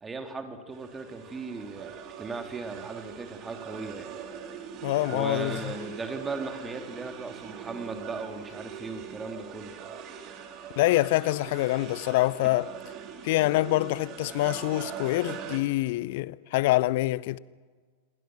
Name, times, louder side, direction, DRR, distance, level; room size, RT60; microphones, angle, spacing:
voice 1, 0.0-4.1 5.1-9.7, right 3 dB, 15° right, 3.0 m, -37 dB
sound 1, 0.7-15.6, right 8 dB, 35° right, 3.0 m, -42 dB
voice 2, 4.8-5.7 10.8-12.7 13.2-17.4, left 18 dB, 50° left, 0.6 m, -25 dB
28.0 x 22.0 x 6.3 m
figure-of-eight pair, 90°, 0 cm